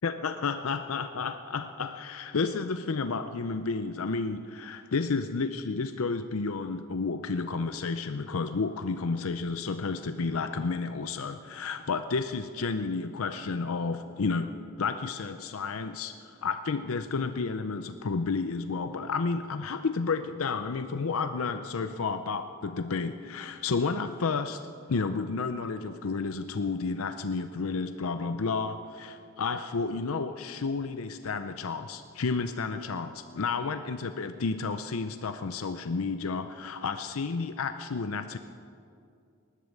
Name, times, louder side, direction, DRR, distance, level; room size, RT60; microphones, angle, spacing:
voice 1, 0.0-14.5 14.8-24.6 24.9-38.4, left 4 dB, 80° left, 9 dB, 0.6 m, -31 dB
19.5 x 11.5 x 6.6 m, 2.4 s
head